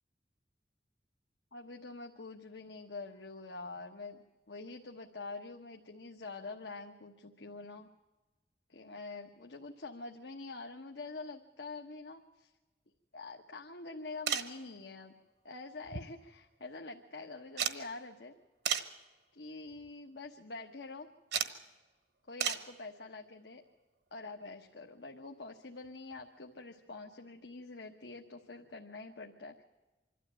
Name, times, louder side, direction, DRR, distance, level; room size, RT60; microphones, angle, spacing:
voice 1, 1.5-7.9 8.7-12.5 13.1-15.1 15.4-18.3 19.3-21.1 22.3-23.6 24.1-29.5, left 3 dB, 80° left, 2 dB, 1.2 m, -46 dB
sound 1, 14.3-14.6 15.8-16.4 16.7-16.8 17.6-17.8 18.7-19.0 19.7-19.9 21.3-21.6 22.4-22.7 24.3-24.4 25.8-25.9 26.1-26.2, right 8 dB, 65° right, 1.2 m, -34 dB
25.5 x 12.5 x 9.0 m, 1.2 s
head